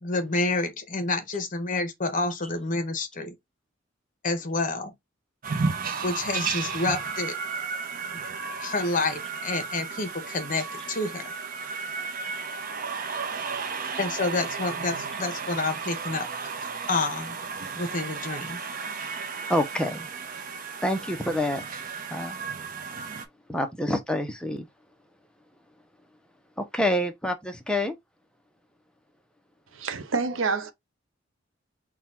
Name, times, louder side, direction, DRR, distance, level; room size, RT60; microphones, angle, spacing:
voice 1, 0.0-3.3 4.2-4.9 6.0-7.4 8.6-11.3 14.0-16.3 16.9-17.4 17.7-18.6, left 3 dB, 45° left, 0.9 m, -28 dB
sound 1, 5.4-23.3, right 5 dB, 45° right, 0.7 m, -34 dB
voice 2, 19.5-20.1 20.8-21.6 22.1-22.4 23.5-24.7 26.6-28.0, left 1 dB, 5° left, 0.7 m, -27 dB
voice 3, 29.7-30.7, right 4 dB, 80° right, 0.7 m, -27 dB
3.9 x 2.3 x 4.2 m
head